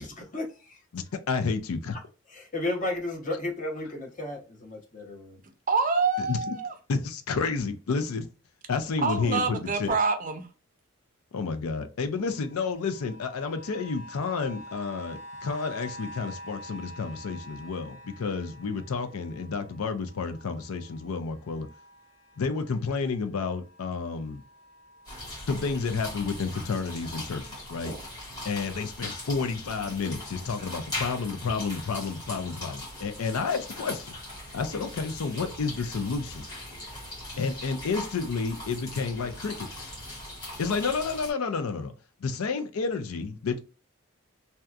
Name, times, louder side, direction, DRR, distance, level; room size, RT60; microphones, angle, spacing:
voice 1, 0.0-0.8 2.3-5.4, left 2 dB, 35° left, 0.7 m, -33 dB
voice 2, 0.9-2.0 6.3-6.6 6.9-8.3 8.7-10.0 11.3-21.7 22.4-24.4 25.5-28.0 28.4-34.1 34.5-36.4 37.4-39.9 40.6-41.9 42.2-43.6, left 4 dB, 90° left, 0.5 m, -30 dB
voice 3, 5.7-6.7 9.0-10.5, right 4 dB, 40° right, 0.5 m, -26 dB
sound 1, 12.2-23.2 23.5-28.2 28.8-28.9, equal, 75° left, 1.3 m, -48 dB
sound 2, 25.0-41.3, left 1 dB, 20° left, 1.2 m, -40 dB
2.7 x 2.2 x 2.3 m
head